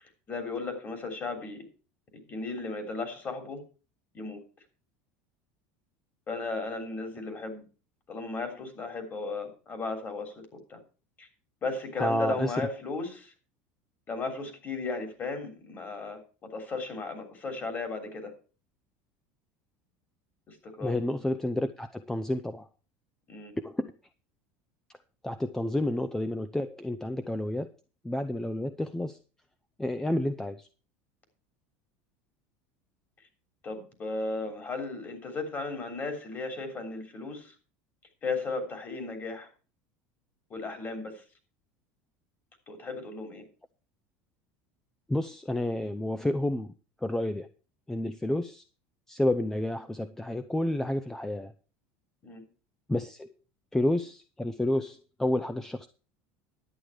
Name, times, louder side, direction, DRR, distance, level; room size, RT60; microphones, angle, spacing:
voice 1, 0.3-1.7 2.3-3.6 4.1-4.4 6.3-7.7 8.1-10.4 10.7-10.8 11.2-11.3 11.6-13.3 14.1-18.3 20.5-21.0 23.3-23.5 33.6-37.5 38.2-39.5 40.5-41.2 42.7-43.5 52.2-52.4, left 3 dB, 30° left, 5 dB, 3.3 m, -35 dB
voice 2, 12.0-12.5 20.8-22.7 23.6-23.9 25.2-27.7 28.0-29.2 29.8-30.7 45.1-46.7 47.0-47.5 47.9-48.6 49.1-51.5 52.9-53.3 53.7-55.9, left 1 dB, 5° left, 11 dB, 0.6 m, -30 dB
11.0 x 8.9 x 4.8 m, 0.36 s
supercardioid pair, 130°, 6 cm